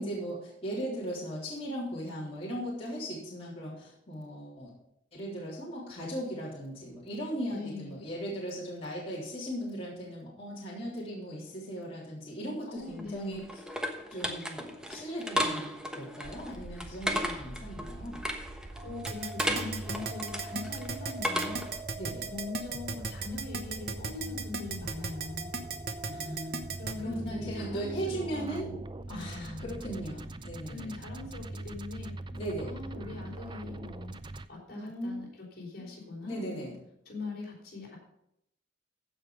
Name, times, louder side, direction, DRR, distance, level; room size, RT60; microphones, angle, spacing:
voice 1, 0.0-4.7 5.1-13.4 14.1-18.2 22.0-22.3 26.0-28.7 29.1-31.0 32.3-32.7 34.7-35.1 36.2-36.7, right 1 dB, 30° left, -7 dB, 3.7 m, -38 dB
voice 2, 7.5-8.0 12.7-13.4 18.8-21.6 22.3-25.5 26.8-28.8 29.1-29.8 30.7-32.1 32.6-34.2 34.5-36.7 37.0-38.0, left 3 dB, 55° left, -2 dB, 4.2 m, -42 dB
sound 1, 12.8-21.8, equal, 5° right, 1.1 m, -35 dB
sound 2, 16.2-34.5, right 2 dB, 25° right, 0.5 m, -42 dB
Keyboard (musical), 19.1-26.9, right 5 dB, 55° right, 1.1 m, -35 dB
15.5 x 5.5 x 5.2 m, 0.78 s
head